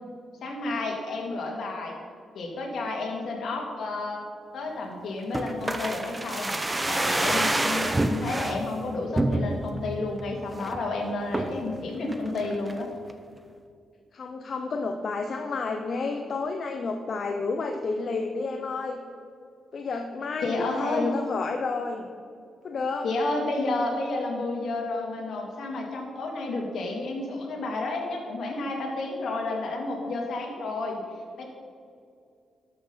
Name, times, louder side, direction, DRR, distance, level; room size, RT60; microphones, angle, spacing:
voice 1, 0.4-2.0 2.3-4.2 4.5-6.5 6.9-12.9 20.4-21.1 23.0-31.0 31.4-31.5, left 2 dB, 70° left, 1 dB, 2.2 m, -31 dB
sound 1, 5.3-8.6 9.1-9.8 10.2-10.3 10.5-10.8 11.3-11.7 12.1-12.8 13.1-13.2, right 1 dB, 15° right, 0.8 m, -27 dB
voice 2, 14.1-19.0 19.7-22.1 22.6-23.1, left 4 dB, 50° left, 4 dB, 0.7 m, -30 dB
12.5 x 6.3 x 5.6 m, 2.3 s
cardioid pair, 95°, 0 cm